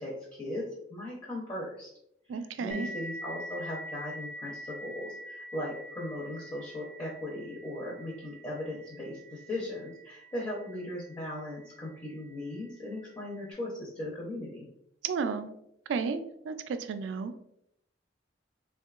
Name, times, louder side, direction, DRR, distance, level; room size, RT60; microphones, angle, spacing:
voice 1, 0.0-1.9 2.3-14.7, left 1 dB, 25° left, -4 dB, 0.6 m, -38 dB
voice 2, 2.3-2.9 15.0-15.5 15.9-17.3, right 5 dB, 85° right, 10 dB, 0.3 m, -33 dB
sound 1, 2.7-11.9, equal, 75° left, 0.7 m, -45 dB
3.6 x 2.2 x 2.3 m, 0.75 s
head